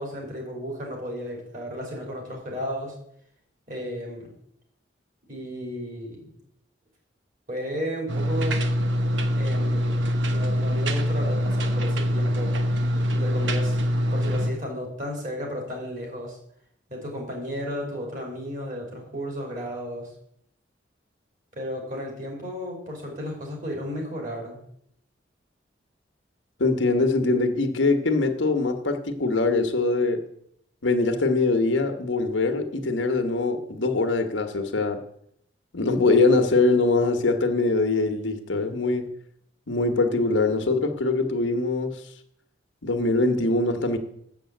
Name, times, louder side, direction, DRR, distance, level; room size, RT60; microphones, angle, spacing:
voice 1, 0.0-3.0 3.7-4.3 5.3-6.3 7.5-8.6 9.3-10.0 10.3-12.6 13.1-13.8 14.1-16.4 16.9-20.1 21.5-24.6, equal, 45° right, 3.5 m, -33 dB
sound 1, 8.1-14.5, equal, 80° right, 1.0 m, -24 dB
voice 2, 26.6-30.3 30.8-35.0 35.7-39.1 39.7-42.0 42.8-44.0, left 3 dB, 85° left, 1.2 m, -23 dB
7.4 x 7.0 x 7.7 m
head